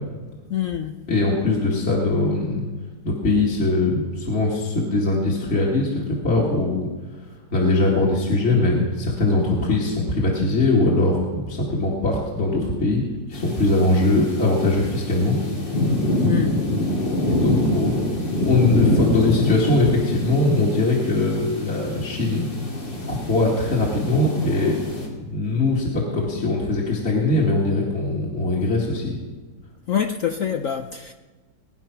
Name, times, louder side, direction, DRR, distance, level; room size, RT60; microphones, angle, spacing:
voice 1, 0.5-1.1 16.3-16.7 29.9-31.1, left 8 dB, 65° left, 0.8 m, -25 dB
voice 2, 1.1-2.6 3.0-6.9 7.1-13.0 13.3-15.4 17.2-18.0 18.4-22.5 23.1-24.8 25.2-29.2, left 2 dB, 35° left, 2.3 m, -21 dB
sound 1, 13.3-25.1, left 1 dB, 85° left, 3.4 m, -25 dB
20.0 x 10.0 x 5.9 m
omnidirectional pair, 1.9 m